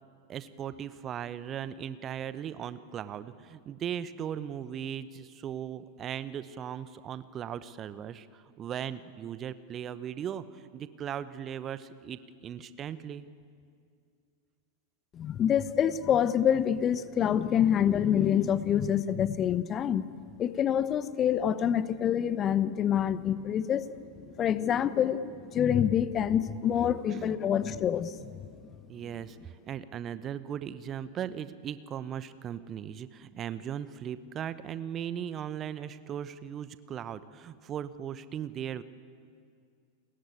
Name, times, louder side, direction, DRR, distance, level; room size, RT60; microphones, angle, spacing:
voice 1, 0.3-13.3 27.1-27.4 28.9-38.8, right 9 dB, 30° right, 14 dB, 1.0 m, -38 dB
voice 2, 15.1-20.1 20.4-23.9 24.2-28.5, left 9 dB, 30° left, 15 dB, 1.0 m, -26 dB
29.5 x 21.0 x 8.5 m, 2.2 s
figure-of-eight pair, 90°, 0 cm